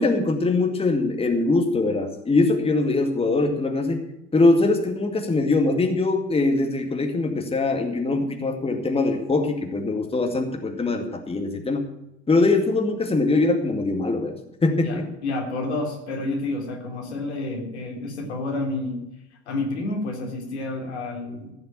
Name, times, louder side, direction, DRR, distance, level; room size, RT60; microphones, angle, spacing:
voice 1, 0.0-4.0 4.3-11.8 12.3-14.3 14.6-15.1, left 3 dB, 15° left, 4 dB, 2.2 m, -22 dB
voice 2, 14.8-19.0 19.5-21.5, left 2 dB, 80° left, 0 dB, 3.6 m, -29 dB
15.5 x 6.5 x 9.0 m, 0.86 s
hypercardioid pair, 80°, 33 cm